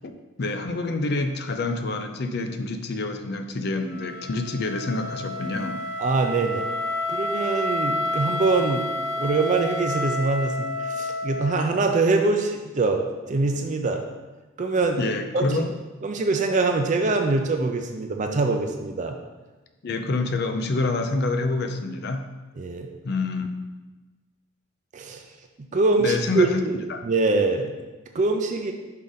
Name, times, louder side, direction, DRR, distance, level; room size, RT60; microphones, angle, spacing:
voice 1, 0.0-5.8 15.0-15.7 19.8-22.3 23.0-23.5 26.0-26.6 26.9-27.0, left 3 dB, 55° left, 7 dB, 0.5 m, -27 dB
Wind instrument woodwind instrument, 3.9-11.9, left 1 dB, 80° left, 0.9 m, -30 dB
voice 2, 6.0-6.7 7.1-8.9 9.2-14.0 14.6-15.0 15.3-15.6 16.0-19.2 22.6-22.9 24.9-25.2 25.6-27.7 28.1-28.7, right 3 dB, 40° right, 4 dB, 0.4 m, -24 dB
5.6 x 4.8 x 3.9 m, 1.2 s
head